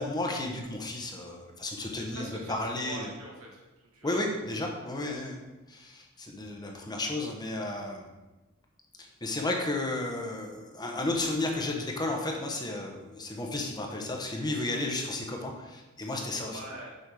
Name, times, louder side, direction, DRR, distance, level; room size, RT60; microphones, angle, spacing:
voice 1, 0.0-3.1 4.0-5.4 5.7-8.1 9.0-16.6, left 2 dB, 20° left, 1 dB, 1.0 m, -33 dB
voice 2, 2.0-4.5 5.1-5.2 16.5-16.9, right 1 dB, 85° right, -3 dB, 2.1 m, -44 dB
6.7 x 5.4 x 4.8 m, 1.1 s
head